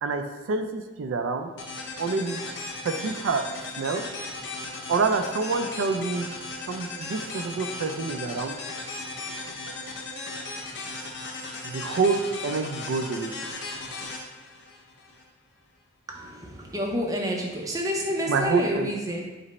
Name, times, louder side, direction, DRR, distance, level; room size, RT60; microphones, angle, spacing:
voice 1, 0.0-1.5 2.0-2.4 2.8-3.4 3.8-4.0 4.9-6.3 6.7-8.6 11.6-13.3 18.3-18.9, right 4 dB, 75° right, 7 dB, 0.4 m, -27 dB
sound 1, 1.6-15.2, left 3 dB, 60° left, 0.7 m, -37 dB
voice 2, 16.1-19.3, equal, 15° right, 0 dB, 0.5 m, -29 dB
5.1 x 2.1 x 4.0 m, 1.1 s
head